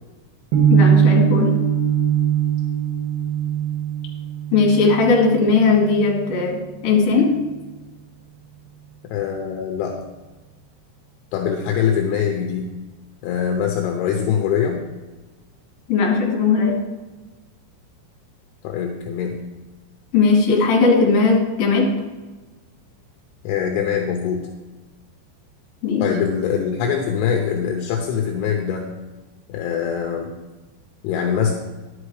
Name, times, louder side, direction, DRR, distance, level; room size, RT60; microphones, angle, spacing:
sound 1, 0.5-6.6, right 8 dB, 65° right, 3.2 m, -21 dB
voice 1, 0.7-1.5 4.5-7.3 15.9-16.8 20.1-21.9 25.8-26.0, left 4 dB, 55° left, -2 dB, 4.1 m, -17 dB
voice 2, 9.1-10.0 11.3-12.7 13.2-14.8 18.6-19.4 23.4-24.5 26.0-28.9 29.5-30.3 31.0-31.5, left 8 dB, 80° left, 2 dB, 3.2 m, -23 dB
11.5 x 8.9 x 4.9 m, 1.2 s
omnidirectional pair, 5.6 m